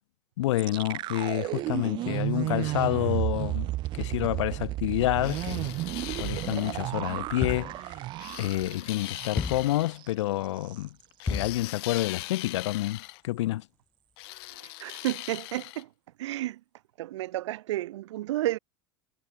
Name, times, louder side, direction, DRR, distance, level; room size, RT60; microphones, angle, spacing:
voice 1, 0.4-5.8 6.2-7.9 8.4-10.9 11.3-13.7, left 16 dB, 80° left, 1.7 m, -29 dB
sound 1, 0.6-9.6 9.9-10.1 10.4-10.8, right 16 dB, 30° right, 0.6 m, -33 dB
sound 2, 5.2-6.9 8.2-10.0 11.2-13.2 14.2-15.8, left 24 dB, 60° left, 1.9 m, -41 dB
sound 3, 7.4-7.8 9.4-9.8 11.3-11.6, left 4 dB, 10° left, 0.8 m, -32 dB
voice 2, 14.8-15.9 16.2-16.6 17.0-18.6, right 15 dB, 80° right, 3.7 m, -31 dB
supercardioid pair, 155°, 15 cm